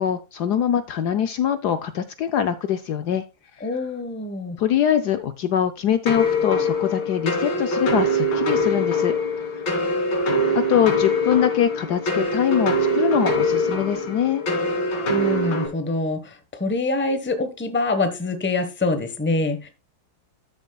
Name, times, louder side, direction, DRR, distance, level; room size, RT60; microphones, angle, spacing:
voice 1, 0.0-3.2 4.6-9.6 10.5-14.4, left 9 dB, 65° left, 10 dB, 1.1 m, -23 dB
voice 2, 3.6-4.6 15.1-19.7, left 2 dB, 10° left, 9 dB, 0.9 m, -25 dB
sound 1, 6.1-15.7, left 1 dB, 80° left, 3.5 m, -23 dB
12.5 x 7.2 x 2.3 m, 0.27 s
omnidirectional pair, 2.1 m